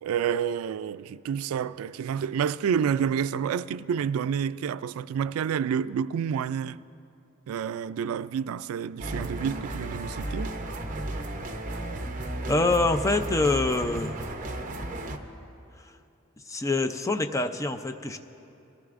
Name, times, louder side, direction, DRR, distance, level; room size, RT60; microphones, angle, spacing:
voice 1, 0.0-6.8 7.5-10.5, right 7 dB, 90° right, 0.3 m, -29 dB
sound 1, 9.0-15.2, right 1 dB, 40° right, 0.8 m, -34 dB
voice 2, 12.5-14.2 16.5-18.2, left 2 dB, 15° left, 0.4 m, -25 dB
22.0 x 14.0 x 2.5 m
head